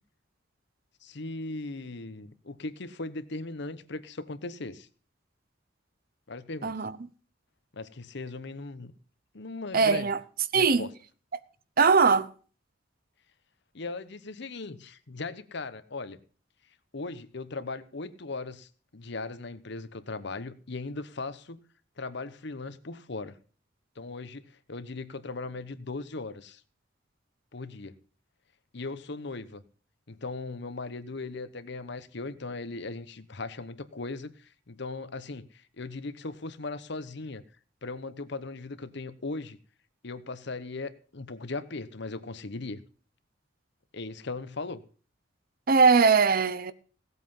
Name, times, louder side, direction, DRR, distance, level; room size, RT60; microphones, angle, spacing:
voice 1, 1.0-4.9 6.3-6.8 7.7-8.9 9.3-10.1 10.5-10.9 13.7-16.2 16.9-21.6 22.0-23.4 24.0-24.4 24.7-26.6 27.5-28.0 28.7-29.6 30.1-37.4 37.8-39.6 40.0-42.8 43.9-44.8, left 3 dB, 65° left, 1.0 m, -38 dB
voice 2, 9.7-10.2 10.5-10.9 11.8-12.3 45.7-46.7, right 5 dB, 50° right, 0.8 m, -21 dB
17.0 x 8.3 x 5.6 m
head